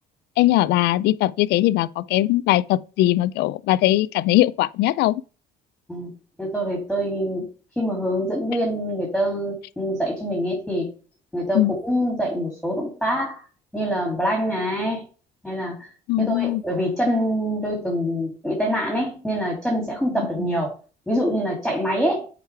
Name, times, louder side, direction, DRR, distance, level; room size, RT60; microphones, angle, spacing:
voice 1, 0.4-5.2 11.5-11.7 16.1-16.6 20.3-20.5, left 15 dB, 80° left, 0.4 m, -20 dB
voice 2, 6.4-7.5 7.8-10.9 11.3-13.4 13.7-15.0 15.4-15.8 16.2-20.7 21.1-22.3, equal, ahead, 2.8 m, -25 dB
8.0 x 4.9 x 3.4 m
cardioid pair, 110°, 17 cm